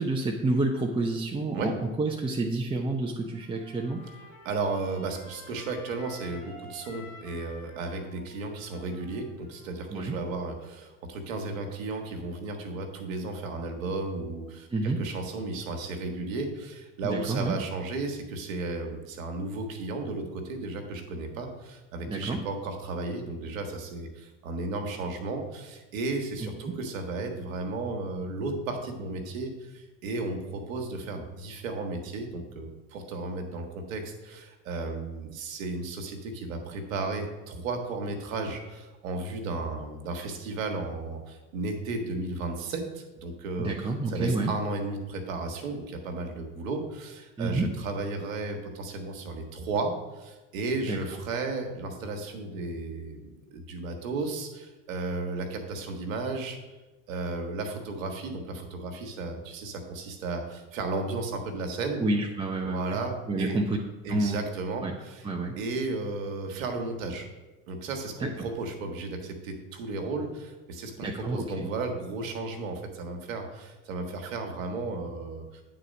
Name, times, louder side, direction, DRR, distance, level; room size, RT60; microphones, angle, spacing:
voice 1, 0.0-1.7 2.0-4.0 9.9-10.1 14.7-15.1 17.0-17.5 22.1-22.4 26.7-26.8 43.6-44.5 47.4-47.7 50.8-51.0 62.0-63.0 63.3-63.8 64.1-64.4 64.8-64.9 65.2-65.5 68.2-68.3 71.0-71.7, right 2 dB, 15° right, 0 dB, 0.7 m, -29 dB
Trumpet, 3.3-10.0, left 2 dB, 60° left, 2.3 m, -50 dB
voice 2, 4.4-56.6 57.1-62.0 62.6-63.6 64.0-65.3 65.6-67.3 67.7-75.6, right 3 dB, 75° right, 4 dB, 1.3 m, -34 dB
8.8 x 4.1 x 5.2 m, 1.2 s
hypercardioid pair, 80°, 40 cm